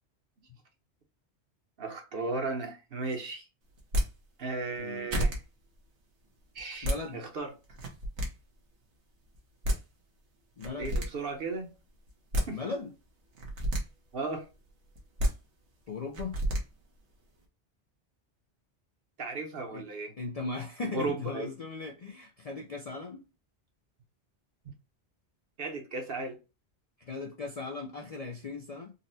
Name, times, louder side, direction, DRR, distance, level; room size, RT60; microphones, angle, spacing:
voice 1, 1.8-3.5 4.4-5.4 6.5-7.5 10.8-11.7 12.5-12.6 14.1-14.5 19.2-20.1 20.9-21.5 25.6-26.4, right 3 dB, 60° right, 1.0 m, -35 dB
sound 1, 3.8-4.1 4.8-4.9 5.1-5.4 6.6-7.0 7.7-8.3 9.3-9.4 9.6-9.8 10.6-11.1 12.1-12.5 13.3-13.8 15.0-15.3 16.1-16.6, equal, 85° right, 1.3 m, -29 dB
voice 2, 4.8-5.2 6.8-7.2 10.6-11.0 12.5-12.9 15.9-16.4 19.7-19.9 20.2-23.2 27.0-28.9, left 3 dB, 50° left, 0.4 m, -38 dB
4.0 x 2.1 x 2.6 m
omnidirectional pair, 1.1 m